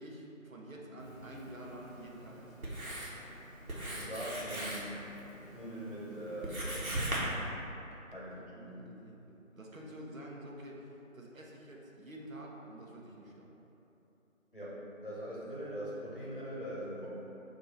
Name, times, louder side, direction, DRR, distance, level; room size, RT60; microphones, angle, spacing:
voice 1, 0.0-2.6 8.3-13.5, right 1 dB, 70° right, -2 dB, 0.9 m, -48 dB
Writing, 1.0-7.2, right 1 dB, 90° right, 1.2 m, -41 dB
voice 2, 3.9-4.9 5.5-7.1 8.1-8.7 14.5-17.1, equal, 40° left, -7 dB, 0.9 m, -42 dB
4.4 x 2.7 x 4.2 m, 3.0 s
figure-of-eight pair, 175°, 41 cm